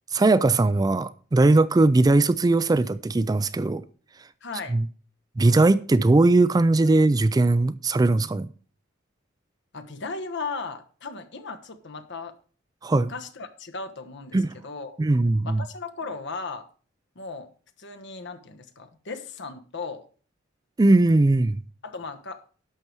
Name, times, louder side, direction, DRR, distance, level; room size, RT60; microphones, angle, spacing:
voice 1, 0.1-3.8 4.7-4.9 5.4-8.5 12.8-13.1 14.3-14.5 15.0-15.6 20.8-21.6, right 2 dB, 20° right, 0.3 m, -19 dB
voice 2, 4.4-4.8 9.7-12.3 12.9-15.0 15.4-16.7 17.1-17.5 17.8-20.0 21.8-22.4, left 4 dB, 60° left, 1.2 m, -36 dB
11.5 x 6.8 x 4.6 m
head